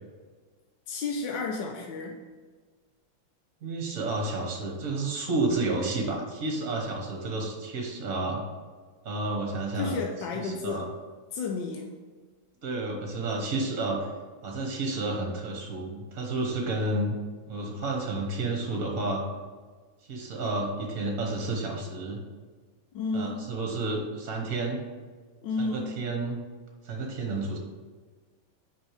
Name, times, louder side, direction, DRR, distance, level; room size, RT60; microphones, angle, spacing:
voice 1, 0.9-2.2 9.7-10.9 11.3-11.9 22.9-23.4 25.4-25.9, left 4 dB, 70° left, 1 dB, 1.4 m, -32 dB
voice 2, 3.6-8.4 9.0-10.0 10.4-10.8 12.6-14.1 14.4-17.2 17.5-19.2 20.1-22.2 23.1-24.8 25.6-26.4 26.8-27.6, right 2 dB, 50° right, 0 dB, 1.4 m, -30 dB
6.1 x 5.5 x 6.4 m, 1.4 s
omnidirectional pair, 2.1 m